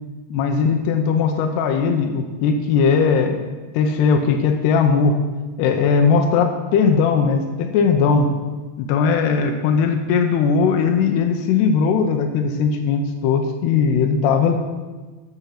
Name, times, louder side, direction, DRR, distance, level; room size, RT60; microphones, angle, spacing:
voice 1, 0.3-3.4 3.7-5.2 5.6-8.3 8.8-14.6, left 5 dB, 85° left, 4 dB, 2.9 m, -18 dB
10.5 x 7.0 x 7.5 m, 1.3 s
omnidirectional pair, 4.6 m